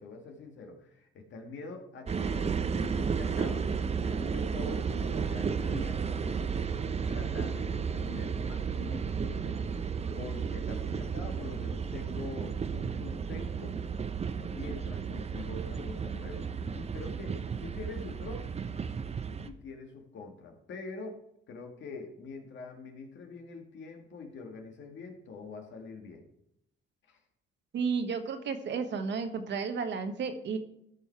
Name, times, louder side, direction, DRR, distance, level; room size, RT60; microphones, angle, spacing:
voice 1, 0.0-3.7 4.0-6.7 7.1-9.6 10.2-13.8 14.5-16.5 16.7-18.5 19.5-21.2 21.5-26.3 27.1-27.2, left 4 dB, 70° left, 3 dB, 1.9 m, -44 dB
sound 1, 2.1-19.5, right 6 dB, 30° right, 0.7 m, -33 dB
voice 2, 27.7-30.6, right 5 dB, 65° right, 7 dB, 1.3 m, -32 dB
13.5 x 5.5 x 4.6 m, 0.77 s
cardioid pair, 90°, 20 cm